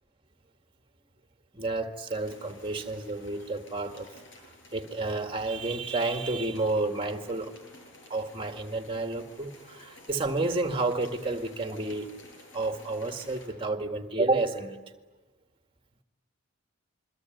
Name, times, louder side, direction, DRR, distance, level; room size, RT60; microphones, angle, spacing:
voice 1, 1.5-4.1 4.7-7.5 8.1-12.1 12.5-14.8, right 2 dB, 25° right, 6 dB, 2.0 m, -30 dB
sound 1, 2.1-13.5, left 1 dB, 60° left, 7.8 m, -53 dB
27.5 x 23.0 x 9.4 m, 1.2 s
head